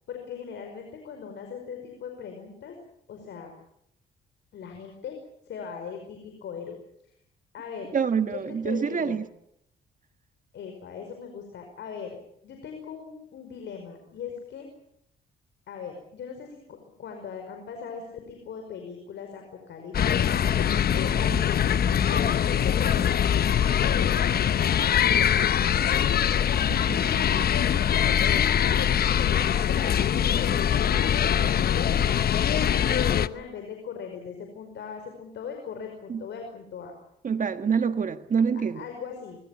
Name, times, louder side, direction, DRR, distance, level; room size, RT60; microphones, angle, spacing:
voice 1, 0.1-2.8 3.1-3.5 4.5-5.2 5.5-6.8 7.5-8.0 8.3-9.2 10.5-12.2 12.4-14.7 15.7-20.4 20.9-21.7 22.1-25.5 25.9-36.9 38.5-39.4, left 6 dB, 70° left, 5.3 m, -39 dB
voice 2, 7.9-9.3 20.9-21.4 26.7-27.0 36.1-36.2 37.2-38.8, right 6 dB, 45° right, 1.6 m, -27 dB
sound 1, 19.9-33.3, left 9 dB, 55° left, 0.9 m, -23 dB
25.5 x 21.5 x 7.4 m
cardioid pair, 85°, 19 cm